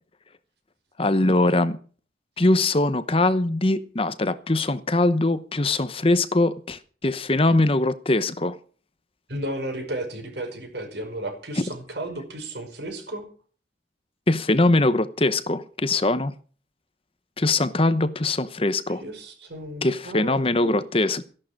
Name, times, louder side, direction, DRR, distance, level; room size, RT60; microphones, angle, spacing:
voice 1, 1.0-1.8 2.4-8.6 11.6-11.7 14.3-16.3 17.4-19.0 19.8-21.2, left 2 dB, 30° left, 0.9 m, -22 dB
voice 2, 9.3-13.3 19.0-20.9, right 1 dB, 65° right, 5.4 m, -34 dB
15.0 x 11.5 x 7.4 m
head